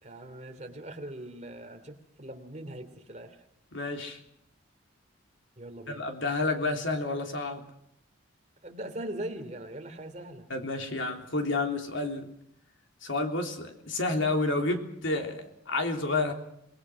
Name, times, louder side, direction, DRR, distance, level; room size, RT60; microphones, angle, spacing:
voice 1, 0.0-3.4 5.6-6.0 8.6-10.5, right 1 dB, 35° right, 6 dB, 2.8 m, -41 dB
voice 2, 3.7-4.2 5.9-7.6 10.5-12.3 13.0-16.3, left 2 dB, 65° left, 4 dB, 3.4 m, -30 dB
27.5 x 20.5 x 6.2 m, 0.74 s
head